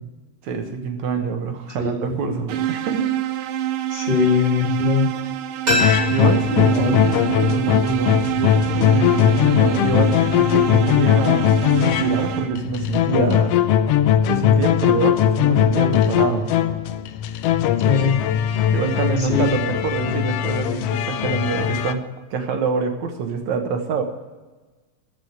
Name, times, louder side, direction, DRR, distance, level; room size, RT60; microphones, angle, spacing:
voice 1, 0.4-3.0 6.1-11.5 11.8-13.5 14.3-16.5 18.7-22.0 22.3-24.0, right 5 dB, 75° right, 5 dB, 2.6 m, -25 dB
voice 2, 1.8-2.2 3.9-5.1 6.0-6.1 6.7-6.9 17.8-18.2 19.2-19.5, left 5 dB, 20° left, 0 dB, 1.6 m, -21 dB
sound 1, 2.5-12.8, right 11 dB, 90° right, 1.2 m, -26 dB
sound 2, 5.6-8.4 8.7-8.8, equal, 30° right, 6.0 m, -28 dB
sound 3, 5.7-21.9, left 10 dB, 75° left, 1.4 m, -19 dB
14.0 x 6.5 x 9.6 m, 1.2 s
omnidirectional pair, 3.3 m